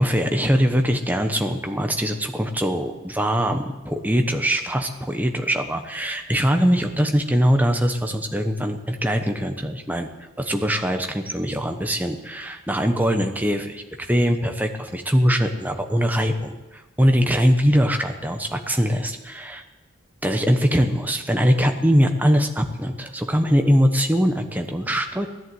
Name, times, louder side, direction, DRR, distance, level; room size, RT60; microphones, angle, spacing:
voice 1, 0.0-10.1 10.4-16.6 17.0-19.6 20.2-25.3, equal, 10° right, 5 dB, 1.0 m, -22 dB
16.5 x 11.0 x 7.9 m, 1.2 s
head